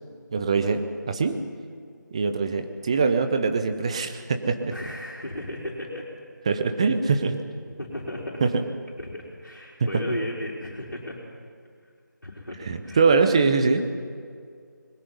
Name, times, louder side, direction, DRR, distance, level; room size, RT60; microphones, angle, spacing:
voice 1, 0.3-0.8 1.1-1.4 2.1-4.7 6.5-7.4 8.4-8.6 12.7-13.8, right 4 dB, 20° right, 8 dB, 0.7 m, -23 dB
voice 2, 4.7-6.1 7.8-8.5 9.0-11.2 12.2-13.0, left 1 dB, 70° left, -4 dB, 3.7 m, -35 dB
23.0 x 21.0 x 5.5 m, 2.2 s
figure-of-eight pair, 160°, 11 cm